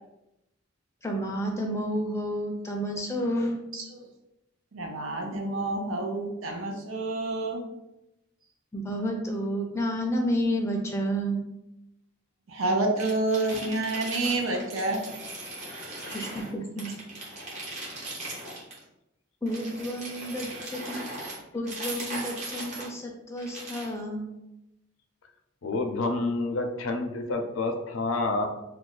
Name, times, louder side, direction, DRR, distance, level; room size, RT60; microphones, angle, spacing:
voice 1, 1.0-3.6 8.7-11.4 16.1-16.9 19.4-21.1 21.5-24.3, equal, 15° left, 1 dB, 0.4 m, -30 dB
voice 2, 4.7-7.6 12.5-15.0 15.9-16.0, right 2 dB, 85° right, 2 dB, 0.6 m, -28 dB
sound 1, 13.0-16.5 16.8-18.8 19.5-22.9 23.4-24.0, right 1 dB, 35° right, 0.8 m, -39 dB
voice 3, 25.6-28.5, left 2 dB, 80° left, 4 dB, 0.5 m, -28 dB
2.4 x 2.3 x 3.8 m, 0.90 s
head